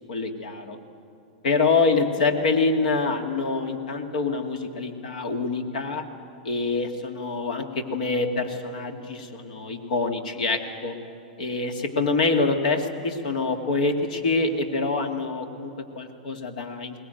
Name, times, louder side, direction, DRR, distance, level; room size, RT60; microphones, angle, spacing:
voice 1, 0.1-0.8 1.4-6.0 6.4-10.9 11.4-17.0, left 3 dB, 75° left, 5 dB, 2.2 m, -25 dB
21.0 x 19.0 x 9.1 m, 2.9 s
hypercardioid pair, 110°, 4 cm